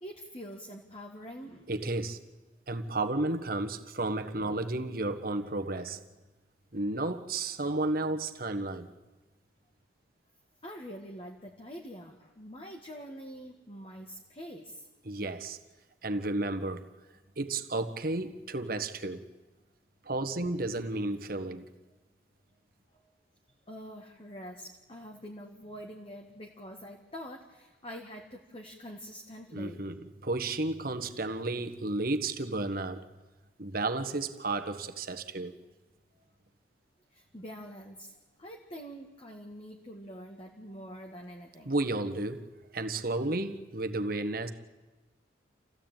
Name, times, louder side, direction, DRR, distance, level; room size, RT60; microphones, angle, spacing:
voice 1, 0.0-1.7 10.6-14.9 22.9-23.0 23.7-29.8 36.2-36.3 37.1-41.7, equal, 30° left, 1.8 m, -45 dB
voice 2, 1.7-2.2 2.7-6.0 6.7-8.9 15.0-15.6 16.0-16.9 17.4-19.2 20.0-21.7 29.5-29.9 30.2-33.1 33.6-35.5 41.6-44.5, right 2 dB, 50° right, 1.5 m, -32 dB
27.5 x 16.0 x 9.1 m
head